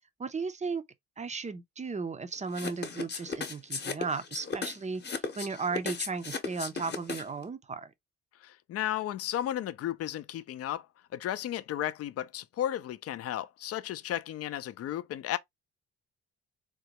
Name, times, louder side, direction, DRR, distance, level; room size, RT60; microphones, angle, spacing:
voice 1, 0.2-0.8 1.2-7.9, right 4 dB, 25° right, 0.5 m, -35 dB
sound 1, 2.5-7.4, left 5 dB, 35° left, 0.9 m, -36 dB
voice 2, 8.4-10.9 11.1-15.4, left 12 dB, 55° left, 0.4 m, -34 dB
3.8 x 2.2 x 2.9 m
cardioid pair, 90°, 30 cm